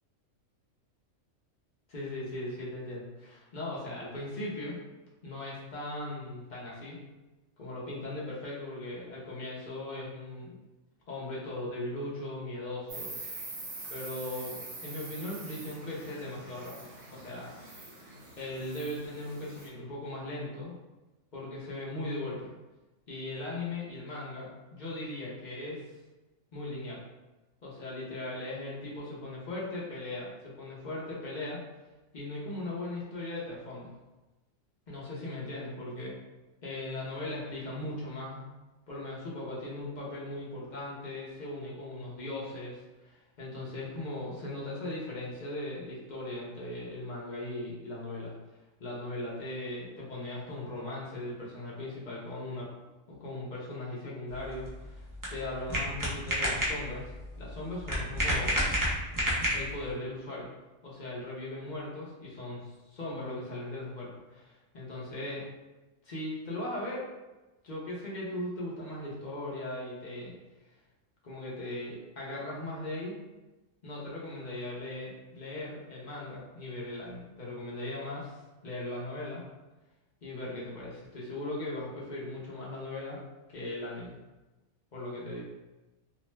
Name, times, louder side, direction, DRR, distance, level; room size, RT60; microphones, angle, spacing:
voice 1, 1.9-4.8 5.2-7.0 7.6-10.6 11.1-13.1 13.9-17.5 18.4-20.7 21.3-22.5 23.1-25.8 26.5-27.0 27.6-31.6 32.1-33.9 34.9-36.2 36.6-38.4 38.9-48.3 48.8-52.7 53.1-58.7 59.5-60.5 60.8-65.5 66.0-67.1 67.6-70.4 71.2-73.2 73.8-78.3 78.6-79.4 80.2-83.2 83.5-84.2 84.9-85.4, left 1 dB, 45° left, -6 dB, 0.6 m, -38 dB
Insect, 12.9-19.7, right 2 dB, 60° right, 1.1 m, -44 dB
sound 1, 54.3-59.9, equal, 35° right, 0.3 m, -31 dB
2.6 x 2.1 x 3.1 m, 1.1 s
omnidirectional pair, 1.4 m